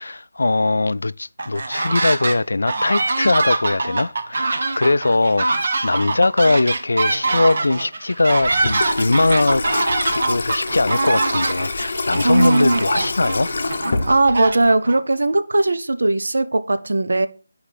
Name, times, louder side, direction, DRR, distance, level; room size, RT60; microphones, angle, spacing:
voice 1, 0.0-9.7 10.1-13.5, left 2 dB, 90° left, 0.3 m, -20 dB
sound 1, 1.4-2.4 2.7-15.0, right 2 dB, 45° right, 0.8 m, -23 dB
Water tap faucet / Sink (filling or washing), 8.4-14.7, left 3 dB, 40° left, 0.7 m, -27 dB
voice 2, 12.2-12.8 14.1-17.3, right 2 dB, 80° right, 0.6 m, -18 dB
10.0 x 4.8 x 3.3 m
figure-of-eight pair, 180°, 0 cm